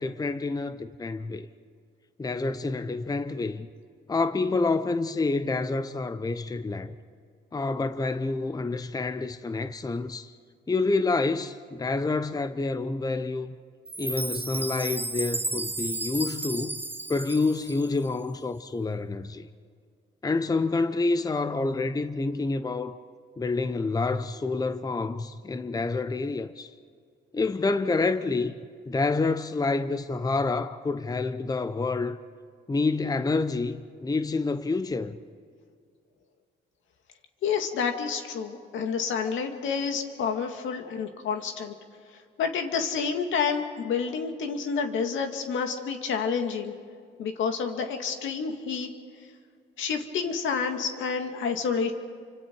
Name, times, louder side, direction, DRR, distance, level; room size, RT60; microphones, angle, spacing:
voice 1, 0.0-1.5 2.2-3.7 4.1-6.9 7.5-10.3 10.7-13.5 14.0-16.8 17.1-19.5 20.2-23.0 23.4-26.7 27.3-28.5 28.9-32.2 32.7-35.2, left 3 dB, 20° left, 0.8 m, -28 dB
Chime, 13.9-18.1, right 2 dB, 10° right, 0.5 m, -33 dB
voice 2, 37.4-41.7 42.1-46.7 47.2-48.9 49.8-51.9, left 6 dB, 75° left, 2.2 m, -29 dB
28.0 x 25.0 x 4.7 m
cardioid pair, 90°, 20 cm